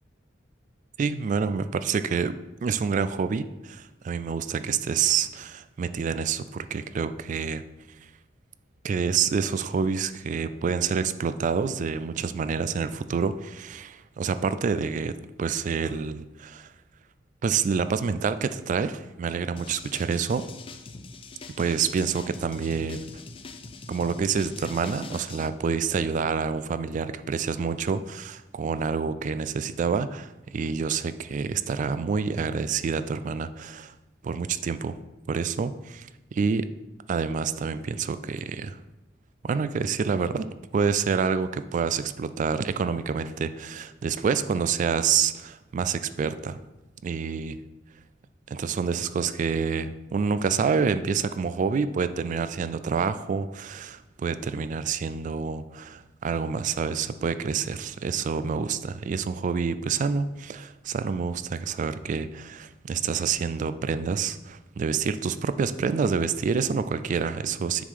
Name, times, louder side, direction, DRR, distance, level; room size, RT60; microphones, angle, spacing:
voice 1, 1.0-2.4 2.6-7.6 8.8-15.1 15.4-16.7 17.4-20.4 21.6-23.0 23.9-33.9 34.2-35.0 35.3-36.6 37.1-38.8 39.4-40.4 40.7-46.6 47.0-47.6 48.5-67.8, right 6 dB, 45° right, 12 dB, 0.3 m, -27 dB
sound 1, 19.6-25.5, left 4 dB, 30° left, 0.5 m, -43 dB
7.0 x 3.7 x 4.9 m, 1.0 s
head